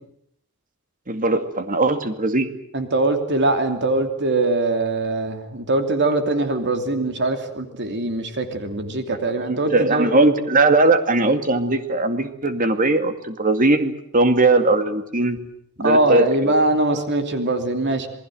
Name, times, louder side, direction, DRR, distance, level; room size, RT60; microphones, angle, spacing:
voice 1, 1.1-2.5 9.5-15.4 15.8-16.5, right 2 dB, 40° right, 8 dB, 2.3 m, -19 dB
voice 2, 2.7-10.1 15.8-18.1, right 2 dB, 55° right, 6 dB, 3.0 m, -22 dB
28.0 x 20.0 x 7.8 m, 0.74 s
head